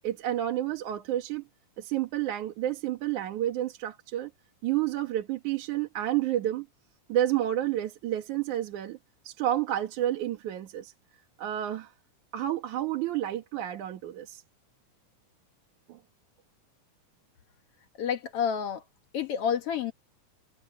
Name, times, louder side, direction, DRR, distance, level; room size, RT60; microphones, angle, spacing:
voice 1, 0.0-1.4 1.8-4.3 4.6-6.7 7.1-9.0 9.2-10.9 11.4-11.9 12.3-14.4 15.9-16.0, right 12 dB, 75° right, 2.9 m, -30 dB
voice 2, 18.0-18.8 19.1-19.9, left 8 dB, 60° left, 1.8 m, -29 dB
omnidirectional pair, 3.6 m